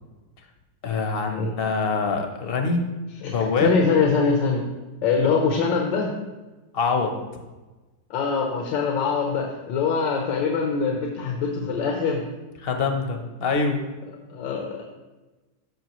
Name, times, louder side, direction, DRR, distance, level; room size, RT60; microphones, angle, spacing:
voice 1, 0.8-2.9 3.2-3.7 6.7-7.1 12.6-13.8, left 4 dB, 45° left, 4 dB, 0.7 m, -24 dB
voice 2, 3.2-4.6 5.0-6.1 8.1-12.2 14.3-14.8, left 5 dB, 85° left, 1 dB, 1.6 m, -23 dB
13.5 x 5.6 x 3.0 m, 1.2 s
omnidirectional pair, 2.0 m